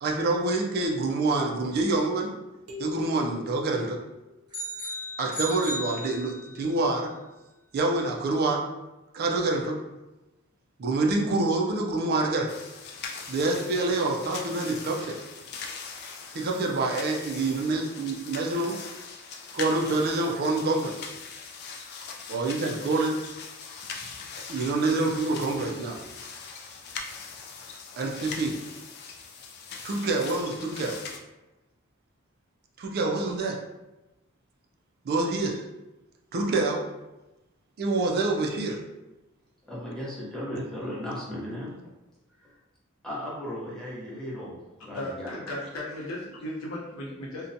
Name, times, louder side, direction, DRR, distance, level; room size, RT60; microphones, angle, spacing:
voice 1, 0.0-2.4 2.8-4.0 5.2-7.1 7.7-8.6 9.1-9.8 10.8-12.5 13.3-15.2 16.3-18.8 19.5-21.0 22.3-23.2 24.5-26.0 28.0-28.5 29.8-31.0 32.8-33.6 35.0-35.6 36.3-36.8 37.8-38.8, right 2 dB, 45° right, 1 dB, 0.4 m, -26 dB
sound 1, 2.7-4.6, left 10 dB, 90° right, 0.6 m, -42 dB
sound 2, 4.5-6.7, equal, 20° right, 1.1 m, -35 dB
sound 3, 12.5-31.2, left 5 dB, 50° left, 0.3 m, -41 dB
voice 2, 39.7-41.8 42.4-42.5 43.0-45.4, left 1 dB, 5° left, -7 dB, 0.7 m, -36 dB
voice 3, 44.9-47.5, left 1 dB, 75° left, -5 dB, 0.8 m, -36 dB
2.6 x 2.1 x 2.6 m, 1.0 s
head